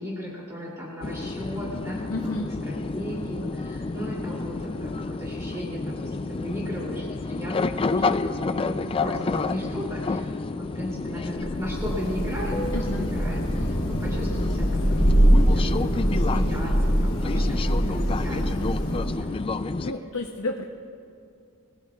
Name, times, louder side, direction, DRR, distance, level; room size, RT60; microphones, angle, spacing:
voice 1, 0.0-2.2 2.6-18.6 18.9-19.3, equal, 15° right, -5 dB, 2.8 m, -36 dB
sound 1, 1.0-19.9, left 3 dB, 25° left, 0.3 m, -30 dB
voice 2, 2.1-2.5 12.7-13.1 19.6-20.6, left 2 dB, 65° left, 2 dB, 0.8 m, -31 dB
Thunder / Rain, 11.4-19.4, equal, 85° left, 4.0 m, -23 dB
24.0 x 20.5 x 2.4 m, 2.4 s
head